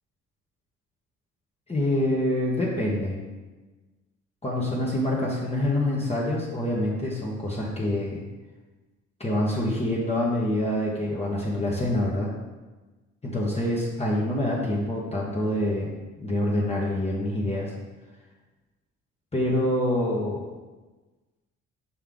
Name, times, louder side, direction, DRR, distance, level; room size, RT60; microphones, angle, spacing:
voice 1, 1.7-3.2 4.4-8.2 9.2-12.3 13.2-15.9 16.2-17.7 19.3-20.5, left 1 dB, 20° left, -5 dB, 1.2 m, -26 dB
5.7 x 5.5 x 3.7 m, 1.2 s
cardioid pair, 90°, 30 cm